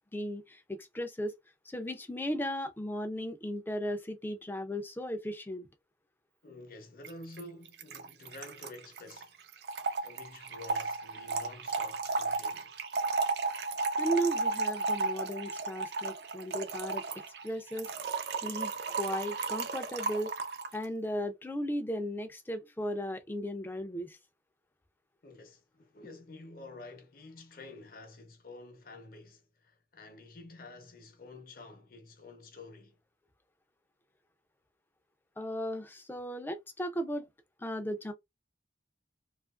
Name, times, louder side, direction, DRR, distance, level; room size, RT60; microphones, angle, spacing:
voice 1, 0.1-1.3 1.7-5.7 14.0-17.0 17.4-17.9 18.4-18.7 19.0-20.3 20.7-24.2 35.4-37.3 37.6-38.1, equal, 10° left, 0.4 m, -36 dB
voice 2, 6.4-9.5 10.0-12.8 25.2-33.0, left 2 dB, 55° left, 0.7 m, -49 dB
Trickle dribble / Fill (with liquid), 7.0-7.1 7.4-7.5 7.7-20.8, right 3 dB, 65° right, 0.5 m, -34 dB
2.8 x 2.4 x 2.3 m
head